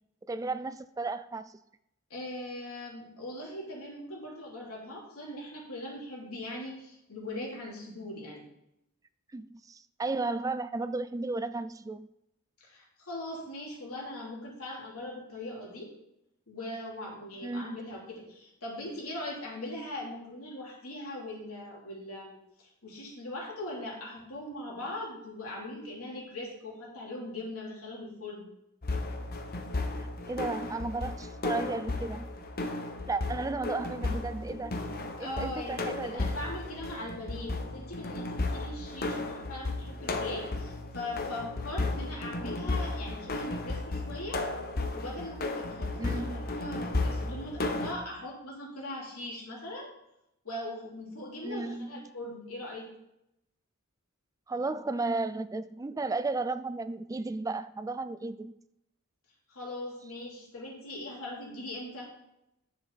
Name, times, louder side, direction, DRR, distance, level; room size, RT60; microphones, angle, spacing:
voice 1, 0.3-1.6 9.3-12.1 17.4-17.8 30.0-32.3 33.1-34.8 35.2-36.2 46.0-46.5 51.4-52.0 54.5-58.5, right 3 dB, 15° right, 13 dB, 0.3 m, -34 dB
voice 2, 2.1-8.4 12.6-15.9 16.5-28.5 35.2-44.4 44.9-49.9 50.4-52.8 59.5-62.1, left 1 dB, 90° left, -3 dB, 3.2 m, -40 dB
sound 1, 28.8-47.9, left 2 dB, 45° left, 1.0 m, -34 dB
9.8 x 6.8 x 4.0 m, 0.83 s
head